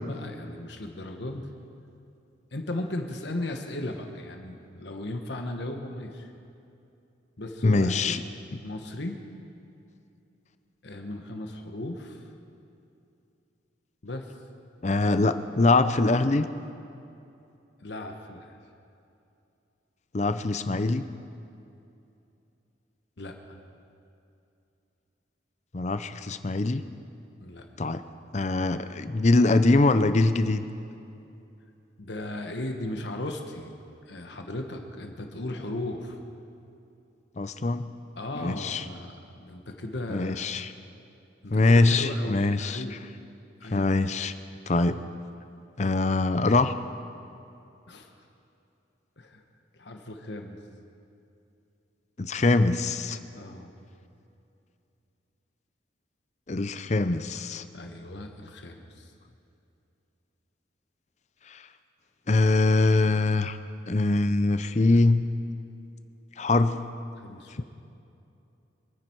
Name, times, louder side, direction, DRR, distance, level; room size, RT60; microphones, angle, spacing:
voice 1, 0.0-1.5 2.5-6.3 7.4-8.2 8.6-9.2 10.8-12.3 14.0-14.3 17.8-18.6 23.2-23.6 27.4-27.7 32.0-33.7 34.1-36.2 38.2-40.5 41.4-43.0 43.6-43.9 47.9-48.1 49.2-49.4 49.7-50.6 53.3-53.7 57.7-59.1 67.2-67.6, left 1 dB, 65° left, 4 dB, 1.3 m, -36 dB
voice 2, 7.6-8.2 14.8-16.5 20.1-21.0 25.7-26.8 27.8-28.0 28.3-30.6 37.4-37.8 38.4-38.8 40.1-40.7 41.5-42.8 43.7-44.3 44.7-45.0 45.8-46.7 52.2-53.2 56.5-57.6 61.5-61.6 62.3-63.6 63.9-65.2 66.4-66.8 67.5-67.6, left 2 dB, 35° left, 11 dB, 0.5 m, -23 dB
25.5 x 9.9 x 4.6 m, 2.7 s
head